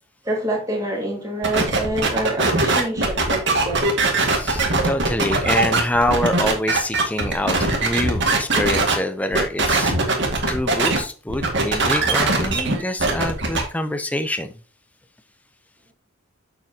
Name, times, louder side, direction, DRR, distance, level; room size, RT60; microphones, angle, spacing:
voice 1, 0.2-3.9, right 1 dB, 15° right, 2.8 m, -26 dB
sound 1, 1.4-8.9 9.3-11.0 11.3-13.6, right 3 dB, 55° right, 2.1 m, -20 dB
voice 2, 4.2-9.9 10.5-14.5, left 1 dB, 5° left, 0.6 m, -25 dB
7.6 x 7.2 x 2.9 m
head